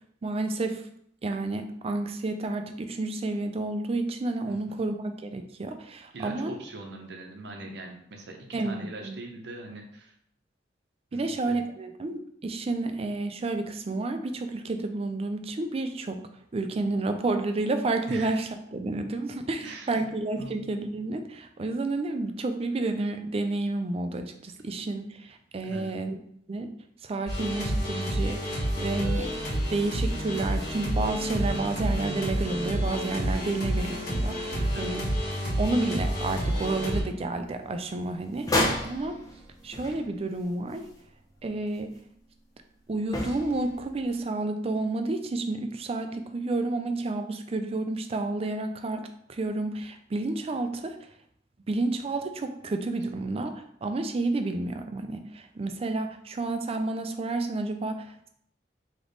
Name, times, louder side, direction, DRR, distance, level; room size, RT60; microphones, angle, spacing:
voice 1, 0.2-0.8 1.2-6.5 8.5-9.2 11.1-16.2 16.5-26.2 26.5-26.7 27.0-29.3 29.7-35.0 35.6-39.2 39.6-40.9 41.4-42.0 42.9-51.0 51.7-58.3, right 2 dB, 35° right, 7 dB, 0.4 m, -30 dB
voice 2, 4.5-4.8 6.1-10.1 11.1-11.6 18.1-18.4 19.6-20.1 20.4-20.6 25.6-26.0 34.6-35.0, right 2 dB, 65° right, 3 dB, 0.7 m, -41 dB
sound 1, 27.3-37.0, equal, 55° left, 1.6 m, -29 dB
sound 2, 38.4-40.5 40.8-40.9 43.1-44.1, left 1 dB, 20° left, 0.7 m, -30 dB
3.4 x 3.0 x 3.9 m, 0.68 s
head